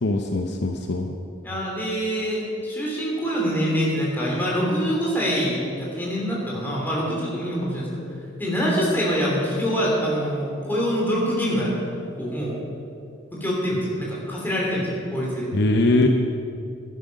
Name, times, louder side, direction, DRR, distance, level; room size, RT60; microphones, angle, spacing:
voice 1, 0.0-1.1 15.5-16.1, left 2 dB, 60° left, 4 dB, 0.7 m, -21 dB
voice 2, 1.4-7.9 8.4-11.7 12.2-12.6 13.3-15.5, equal, 10° left, -4 dB, 3.0 m, -25 dB
12.5 x 10.0 x 5.3 m, 2.5 s
head